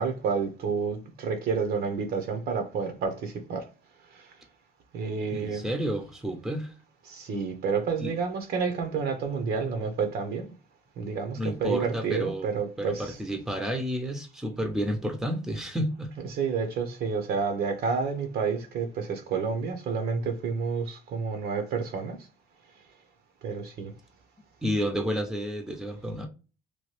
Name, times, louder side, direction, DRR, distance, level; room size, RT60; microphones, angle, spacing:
voice 1, 0.0-3.7 4.1-4.3 4.9-5.7 7.0-10.5 11.0-13.2 16.2-22.2 23.4-23.9, right 5 dB, 65° right, 0.8 m, -30 dB
voice 2, 5.3-6.7 8.0-8.1 11.3-12.5 12.8-16.1 24.6-26.3, equal, 5° right, 0.6 m, -30 dB
3.0 x 2.2 x 3.1 m
cardioid pair, 110°, 17 cm